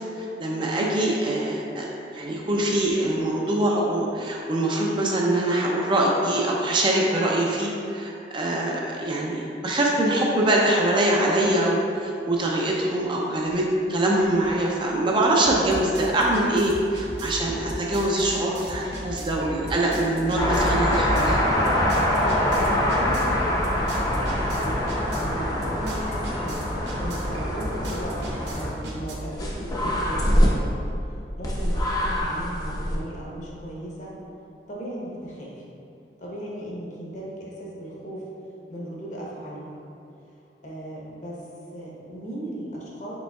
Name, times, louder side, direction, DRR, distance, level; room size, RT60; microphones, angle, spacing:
voice 1, 0.0-21.4, right 1 dB, 25° right, -2 dB, 0.4 m, -23 dB
sound 1, 13.5-13.6 13.9-29.1, equal, 75° right, 0.8 m, -37 dB
sound 2, 20.4-28.7 29.3-30.5 31.4-33.0, equal, 20° left, 0.6 m, -24 dB
voice 2, 22.6-24.9 25.2-26.6 27.0-30.7 31.4-34.2 34.7-35.6 36.2-38.3 38.7-39.8 40.6-43.2, equal, 45° left, -5 dB, 0.9 m, -36 dB
5.1 x 4.3 x 2.3 m, 2.6 s
head